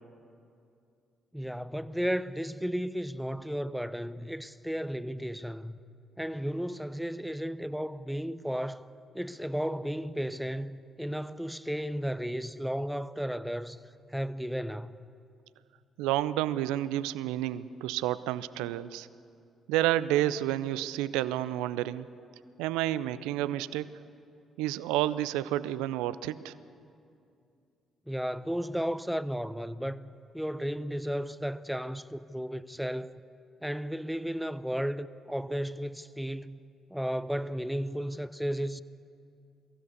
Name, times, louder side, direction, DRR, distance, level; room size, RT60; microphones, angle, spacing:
voice 1, 1.3-5.8 6.2-8.9 9.1-13.8 14.1-15.0 28.1-33.2 33.6-36.6 36.9-38.8, equal, ahead, 0.7 m, -34 dB
voice 2, 16.0-19.1 19.7-22.1 22.6-23.9 24.6-26.5, right 13 dB, 75° right, 0.5 m, -30 dB
22.5 x 16.0 x 8.3 m
hypercardioid pair, 45°, 0 cm